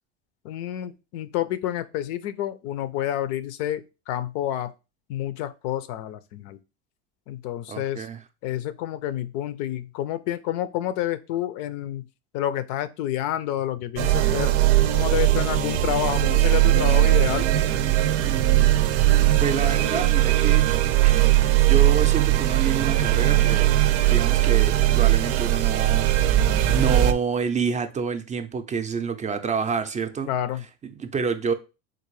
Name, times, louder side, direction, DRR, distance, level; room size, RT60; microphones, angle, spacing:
voice 1, 0.4-4.7 5.1-6.6 7.3-8.1 8.4-12.0 12.3-14.5 14.9-17.5 30.3-30.6, left 12 dB, 70° left, 0.6 m, -29 dB
voice 2, 7.7-8.2 18.2-18.7 19.4-20.7 21.0-21.2 21.6-23.7 24.1-26.4 26.7-30.3 30.8-31.5, right 5 dB, 20° right, 0.4 m, -28 dB
sound 1, 14.0-27.1, right 15 dB, 85° right, 0.6 m, -19 dB
3.9 x 2.4 x 4.7 m
supercardioid pair, 110°, 33 cm